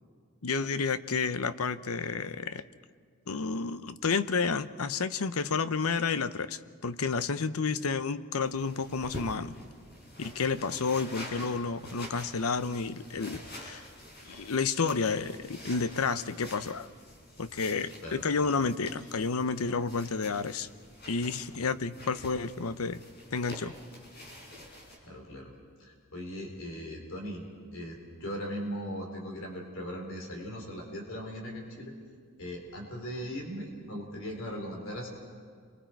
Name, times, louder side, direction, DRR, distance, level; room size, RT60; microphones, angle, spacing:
voice 1, 0.4-2.6 3.3-9.5 10.2-13.8 14.3-16.9 17.4-20.7 21.1-23.0 23.3-23.8, left 4 dB, 85° left, 14 dB, 0.7 m, -30 dB
sound 1, 8.4-25.0, left 1 dB, 50° left, 5.2 m, -47 dB
voice 2, 25.0-25.5 25.8-27.4 27.7-31.9 32.4-35.1, equal, 65° left, 1 dB, 4.1 m, -39 dB
29.5 x 23.5 x 4.6 m, 2.1 s
head